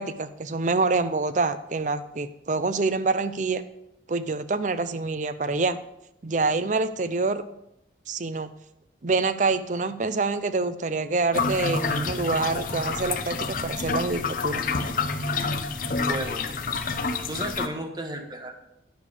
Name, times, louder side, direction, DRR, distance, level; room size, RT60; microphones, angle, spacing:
voice 1, 0.0-3.6 4.1-5.8 6.2-7.4 8.1-8.5 9.0-14.6, right 3 dB, 45° right, 13 dB, 0.5 m, -26 dB
sound 1, 11.3-17.7, left 4 dB, 50° left, 0.7 m, -28 dB
voice 2, 15.9-16.5 17.3-18.5, right 1 dB, 25° right, 5 dB, 1.0 m, -33 dB
10.0 x 6.9 x 4.9 m, 0.83 s
head